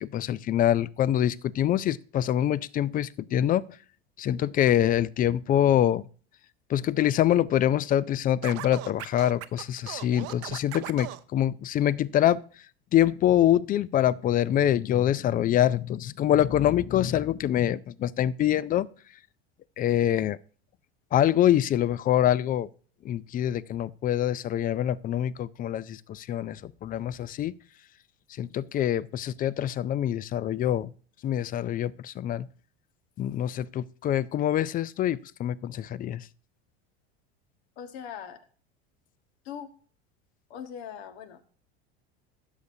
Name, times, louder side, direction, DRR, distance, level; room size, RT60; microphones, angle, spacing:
voice 1, 0.0-3.6 4.2-6.0 6.7-12.4 12.9-18.9 19.8-20.4 21.1-22.7 23.0-27.5 28.4-30.9 31.2-32.5 33.2-36.2, left 11 dB, 30° left, 0.3 m, -25 dB
Scratching (performance technique), 8.4-11.2, right 16 dB, 50° right, 0.7 m, -38 dB
voice 2, 37.8-38.4 39.4-39.7 40.5-41.4, left 8 dB, 70° left, 1.5 m, -40 dB
16.0 x 6.7 x 2.7 m
hypercardioid pair, 95°, 32 cm